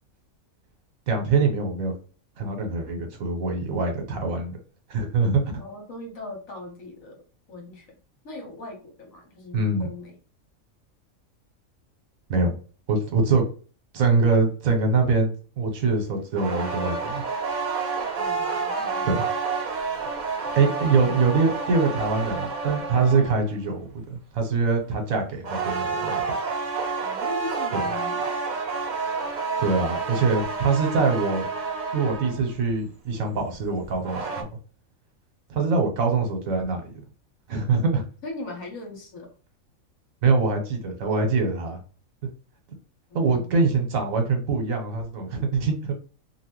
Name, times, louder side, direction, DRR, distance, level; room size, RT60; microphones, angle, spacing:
voice 1, 1.1-1.9 2.4-4.6 4.9-5.4 9.5-9.9 12.3-12.6 12.9-13.4 13.9-15.3 15.6-17.2 19.0-19.2 20.5-26.2 27.7-27.8 29.6-31.5 31.9-34.5 35.5-37.0 37.5-38.0 40.2-41.8 43.1-45.9, right 4 dB, 80° right, 4 dB, 1.2 m, -23 dB
voice 2, 5.6-7.2 7.5-8.0 8.2-10.2 18.2-19.1 27.0-28.4 38.2-39.3 43.1-43.5, left 2 dB, 75° left, 2 dB, 1.5 m, -39 dB
sound 1, 16.3-23.5 25.4-32.5 33.8-34.4, right 4 dB, 55° right, 0.5 m, -29 dB
2.8 x 2.5 x 2.9 m, 0.38 s
omnidirectional pair, 1.4 m